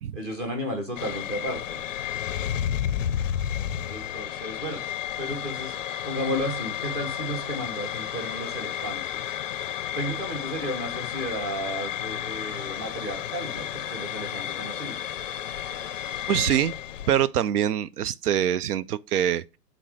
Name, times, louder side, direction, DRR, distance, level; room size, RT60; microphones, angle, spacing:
voice 1, 0.1-1.8 3.9-4.8 5.2-5.7 6.0-9.3 9.9-15.0, equal, 15° right, 0.8 m, -33 dB
sound 1, 1.0-17.2, left 10 dB, 50° left, 0.5 m, -32 dB
voice 2, 16.3-16.7 17.1-19.6, right 10 dB, 65° right, 0.5 m, -24 dB
5.8 x 3.9 x 4.7 m
hypercardioid pair, 175°, 49 cm